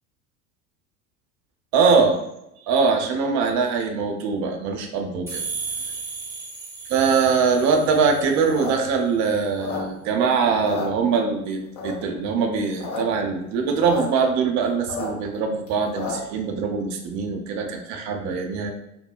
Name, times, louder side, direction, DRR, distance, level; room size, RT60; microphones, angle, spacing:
voice 1, 1.7-2.2 2.7-5.4 6.9-18.7, right 5 dB, 40° right, 4 dB, 0.5 m, -22 dB
sound 1, 5.3-8.8, right 4 dB, 5° right, 0.7 m, -35 dB
sound 2, 8.4-10.2 10.5-11.4 11.8-12.2 12.6-13.0 13.2-13.3 13.5-14.0 14.4-16.4, left 5 dB, 60° left, 1.2 m, -32 dB
2.9 x 2.0 x 2.3 m, 0.87 s
figure-of-eight pair, 75°, 44 cm